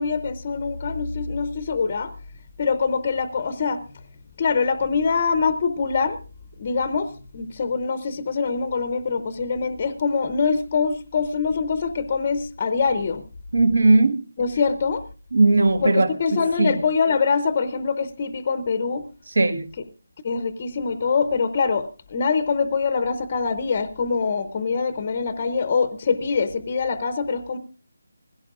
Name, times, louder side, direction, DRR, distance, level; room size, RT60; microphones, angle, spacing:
voice 1, 0.0-2.1 2.6-3.8 4.4-6.2 6.6-13.2 14.4-15.0 15.8-19.1 20.2-27.6, left 5 dB, 25° left, 0.7 m, -24 dB
voice 2, 13.5-14.2 15.3-16.7 19.4-19.7, right 2 dB, 65° right, 1.6 m, -18 dB
20.0 x 16.5 x 2.5 m
figure-of-eight pair, 175°, 0 cm